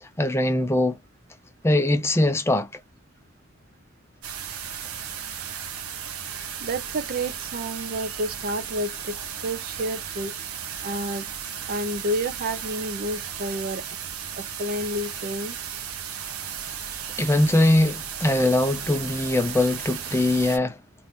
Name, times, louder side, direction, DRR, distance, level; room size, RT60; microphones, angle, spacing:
voice 1, 0.0-1.0 1.6-2.7 17.2-20.8, left 1 dB, 10° left, 0.4 m, -21 dB
sound 1, 4.2-20.6, right 8 dB, 85° right, 0.7 m, -35 dB
voice 2, 6.6-10.4 10.8-11.3 11.7-13.8 14.4-15.6, right 1 dB, 40° right, 0.5 m, -30 dB
2.8 x 2.6 x 3.5 m
head